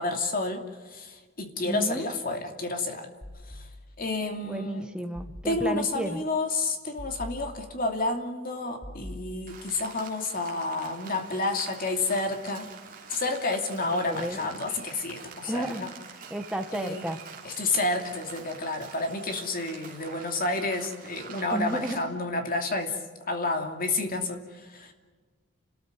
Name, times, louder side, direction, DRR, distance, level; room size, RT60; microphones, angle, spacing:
voice 1, 0.0-3.1 3.5-3.7 4.0-4.9 5.4-12.7 13.1-15.9 16.7-17.0 17.4-23.0 23.3-24.9, left 2 dB, 40° left, 4 dB, 2.7 m, -30 dB
voice 2, 1.7-2.1 4.4-6.2 14.1-14.5 15.4-15.8 16.3-17.2 21.5-22.0, right 1 dB, 5° right, 6 dB, 1.4 m, -32 dB
sound 1, 3.2-4.2 5.1-6.0 7.0-8.1 8.8-9.9, left 1 dB, 20° left, 3.4 m, -44 dB
Rain, 9.5-22.0, right 6 dB, 40° right, 3.3 m, -46 dB
30.0 x 13.5 x 9.3 m, 1.4 s
head